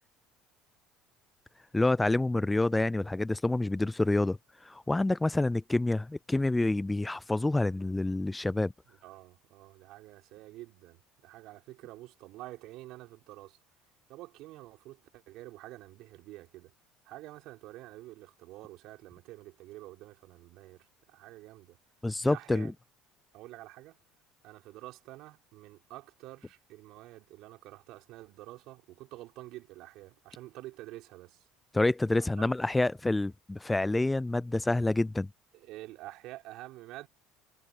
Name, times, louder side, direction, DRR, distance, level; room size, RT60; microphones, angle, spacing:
voice 1, 1.7-4.4 4.6-8.7 22.0-22.7 31.7-35.3, left 2 dB, 10° left, 0.4 m, -27 dB
voice 2, 8.9-13.6 14.1-16.7 17.0-21.8 22.2-22.7 23.3-24.0 24.4-31.5 32.4-32.5 35.5-37.1, right 17 dB, 65° right, 3.4 m, -48 dB
hypercardioid pair, 65°, 0 cm